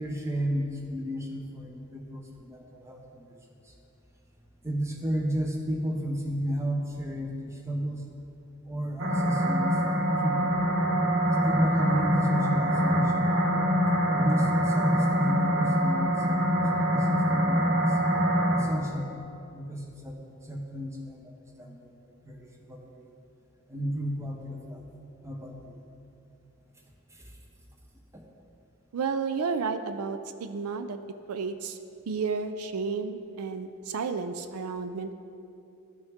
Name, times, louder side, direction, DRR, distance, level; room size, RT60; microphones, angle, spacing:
voice 1, 0.0-3.3 3.7-3.8 4.6-8.1 8.7-10.6 11.4-13.4 14.1-16.6 16.9-18.0 18.5-19.2 19.5-20.2 20.4-22.0 22.3-23.1 23.7-24.8 25.2-25.8 27.1-27.3 28.1-28.2, equal, 10° right, 1 dB, 0.8 m, -33 dB
sound 1, 9.0-18.6, equal, 55° right, 1.0 m, -24 dB
voice 2, 28.9-31.0 31.3-31.8 32.1-35.1, right 5 dB, 80° right, 9 dB, 0.4 m, -32 dB
13.0 x 6.2 x 3.6 m, 2.7 s
head